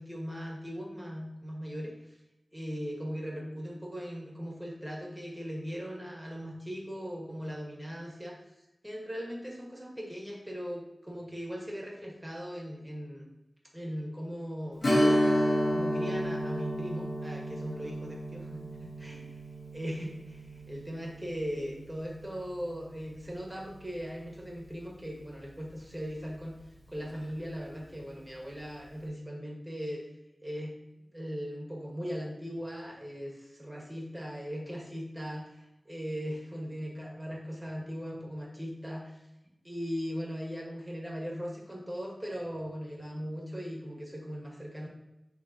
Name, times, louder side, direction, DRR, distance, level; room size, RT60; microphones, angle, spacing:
voice 1, 0.0-2.2 2.5-8.4 8.8-13.3 13.7-19.4 19.7-26.6 26.9-30.0 30.4-30.8 31.1-39.3 39.6-44.9, equal, 10° right, -2 dB, 1.8 m, -39 dB
Strum, 14.8-24.0 24.3-24.4 27.0-27.2 27.6-27.7, equal, 70° left, 1.3 m, -32 dB
9.4 x 3.6 x 3.0 m, 0.93 s
wide cardioid pair, 50°, 0 cm